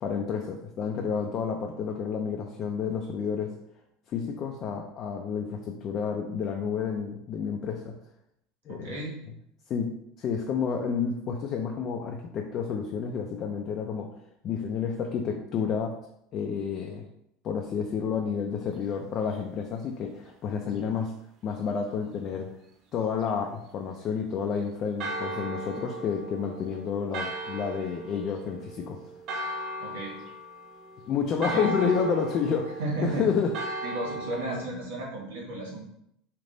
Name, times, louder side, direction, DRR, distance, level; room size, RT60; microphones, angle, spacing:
voice 1, 0.0-3.6 4.1-8.0 8.7-9.0 9.7-14.1 14.4-16.0 16.3-17.1 17.4-21.1 21.4-22.5 22.9-29.0 31.1-33.5, left 6 dB, 45° left, 1 dB, 0.4 m, -30 dB
voice 2, 8.7-9.2 29.8-30.2 31.5-31.9 32.8-33.3 33.8-35.8, right 2 dB, 85° right, -4 dB, 1.5 m, -34 dB
Church bell, 25.0-34.7, right 2 dB, 50° right, 0.5 m, -37 dB
3.3 x 2.5 x 3.8 m, 0.76 s
supercardioid pair, 100°, 0 cm